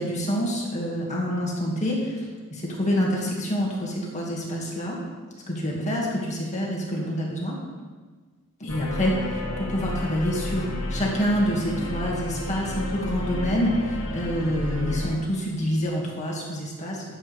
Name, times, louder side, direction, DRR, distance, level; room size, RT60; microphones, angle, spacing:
voice 1, 0.0-2.2 2.5-5.0 5.5-7.6 8.6-17.0, equal, 35° left, -3 dB, 2.1 m, -27 dB
sound 1, 8.7-15.1, left 1 dB, 80° left, 1.9 m, -32 dB
13.5 x 8.0 x 3.5 m, 1.4 s
head